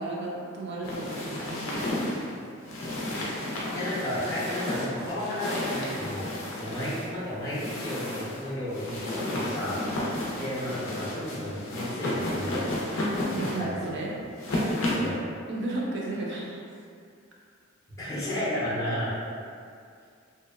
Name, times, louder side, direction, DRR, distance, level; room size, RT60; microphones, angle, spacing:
voice 1, 0.0-1.8 13.3-14.1 15.5-16.6, right 2 dB, 60° right, -3 dB, 0.4 m, -33 dB
sound 1, 0.8-15.2, left 1 dB, 80° left, 0.5 m, -32 dB
voice 2, 3.7-6.2 6.6-9.8 10.4-12.8 13.6-13.8 14.9-15.2 18.0-19.1, left 1 dB, 15° left, -10 dB, 0.6 m, -32 dB
2.7 x 2.0 x 2.3 m, 2.3 s
head